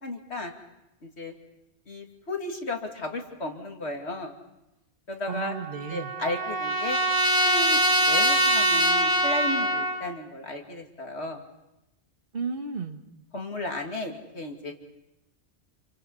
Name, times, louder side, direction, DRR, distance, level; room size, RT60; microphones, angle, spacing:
voice 1, 0.0-0.5 1.0-1.3 1.9-4.4 5.1-5.5 5.9-7.0 7.3-7.8 8.1-11.4 13.3-14.7, left 1 dB, 80° left, 3 dB, 2.9 m, -34 dB
Trumpet, 5.3-10.0, right 1 dB, 20° right, 2.1 m, -24 dB
voice 2, 5.3-6.1 12.3-13.0, right 5 dB, 55° right, 6 dB, 1.6 m, -33 dB
29.0 x 24.5 x 5.6 m, 0.92 s
omnidirectional pair, 1.1 m